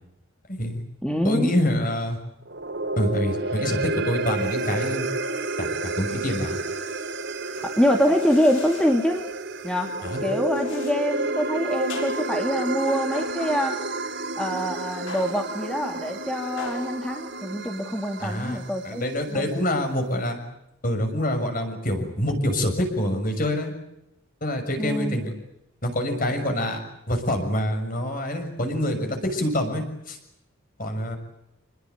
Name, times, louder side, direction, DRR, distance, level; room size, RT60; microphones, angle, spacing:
voice 1, 0.5-0.8 1.2-2.2 3.0-5.1 5.6-6.6 10.0-10.2 18.2-18.6 18.8-20.4 20.8-23.7 24.4-25.3 25.8-26.8 27.1-30.2 30.8-31.2, left 1 dB, 40° left, 5 dB, 6.5 m, -26 dB
voice 2, 1.0-1.5 7.6-9.2 9.6-9.9 10.2-13.8 14.4-19.5 24.8-25.2, equal, 5° left, 2 dB, 2.4 m, -25 dB
sound 1, 2.4-18.9, right 2 dB, 55° right, 3.5 m, -30 dB
sound 2, 7.6-9.1 10.5-11.1 11.9-12.5 13.1-13.9 15.1-15.6 16.6-17.0, left 4 dB, 75° left, 5.9 m, -40 dB
28.0 x 21.0 x 9.4 m, 0.84 s
head